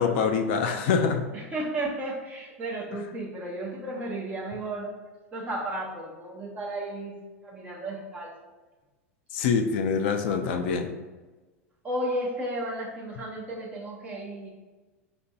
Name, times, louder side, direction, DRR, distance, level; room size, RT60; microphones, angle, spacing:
voice 1, 0.0-1.3 9.3-10.9, left 6 dB, 55° left, 6 dB, 0.4 m, -25 dB
voice 2, 1.3-4.9 5.3-7.1 7.4-8.3 11.8-14.5, right 1 dB, 20° right, -3 dB, 0.7 m, -33 dB
5.2 x 2.5 x 2.3 m, 1.2 s
figure-of-eight pair, 90°, 7 cm